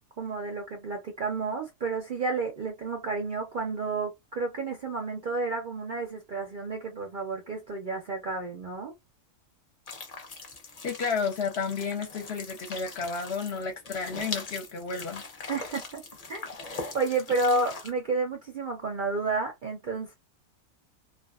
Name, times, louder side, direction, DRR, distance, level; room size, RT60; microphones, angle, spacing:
voice 1, 0.2-8.9 15.5-16.0 16.3-16.5 16.9-20.1, right 3 dB, 55° right, 0.5 m, -31 dB
sound 1, 9.9-17.9, left 3 dB, 40° left, 0.6 m, -41 dB
voice 2, 10.8-15.2, left 5 dB, 55° left, 0.9 m, -32 dB
2.4 x 2.3 x 2.3 m
omnidirectional pair, 1.4 m